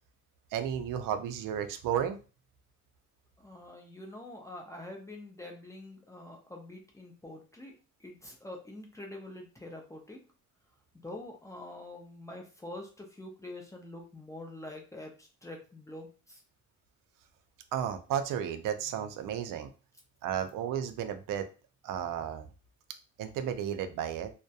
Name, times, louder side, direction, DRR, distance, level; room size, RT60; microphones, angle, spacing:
voice 1, 0.5-2.2 17.7-19.7 20.2-21.5 21.8-22.5 23.2-24.3, right 9 dB, 85° right, 8 dB, 0.5 m, -33 dB
voice 2, 3.4-7.7 8.0-10.2 11.0-16.4, left 1 dB, 10° left, 1 dB, 0.3 m, -45 dB
2.3 x 2.1 x 2.6 m, 0.34 s
cardioid pair, 160°, 31 cm